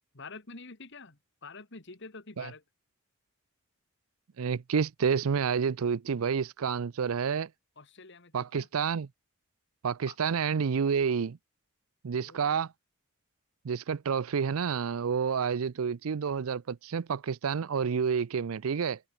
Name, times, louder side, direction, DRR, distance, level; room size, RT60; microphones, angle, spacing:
voice 1, 0.2-2.6 7.8-8.7 10.1-10.2 12.2-12.6, left 3 dB, 55° left, 2.1 m, -47 dB
voice 2, 4.4-7.5 8.3-9.1 9.8-11.4 12.0-12.7 13.6-19.0, right 6 dB, 75° right, 0.5 m, -29 dB
head